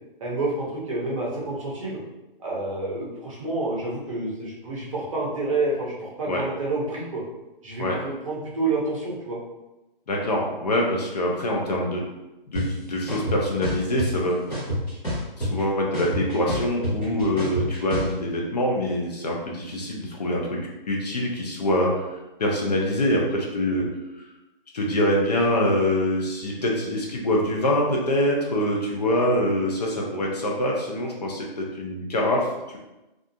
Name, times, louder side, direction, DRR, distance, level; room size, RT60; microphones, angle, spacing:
voice 1, 0.2-2.0 2.4-7.2 7.6-9.4, right 2 dB, 35° right, -5 dB, 0.7 m, -28 dB
voice 2, 10.1-12.0 12.5-14.5 15.4-20.6 20.9-23.9 24.1-24.2 24.7-32.8, left 1 dB, 45° left, -2 dB, 0.5 m, -25 dB
sound 1, 12.5-12.6 13.1-14.1 14.5-15.6 15.9-18.1, equal, 10° left, 0.8 m, -27 dB
2.4 x 2.4 x 2.6 m, 1.0 s
hypercardioid pair, 160°, 29 cm